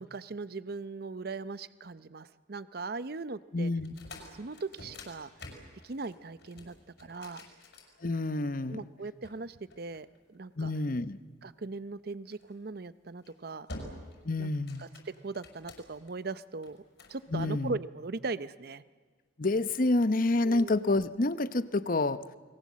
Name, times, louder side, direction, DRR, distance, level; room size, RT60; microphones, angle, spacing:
voice 1, 0.0-3.7 4.3-5.3 5.8-6.7 7.0-7.5 8.7-10.7 11.4-13.7 14.4-14.5 14.8-16.8 17.1-18.8 20.4-20.7, right 3 dB, 55° right, 15 dB, 0.7 m, -39 dB
voice 2, 3.5-3.9 8.0-8.9 10.6-11.2 14.2-14.9 17.3-17.8 19.4-22.2, left 2 dB, 45° left, 14 dB, 0.8 m, -28 dB
sound 1, 3.8-8.5 9.2-10.5 12.3-12.6 13.1-13.3 13.7-14.2 14.5-16.1 16.6-17.2, left 1 dB, 60° left, 6.1 m, -48 dB
29.5 x 22.5 x 7.5 m, 1.5 s
head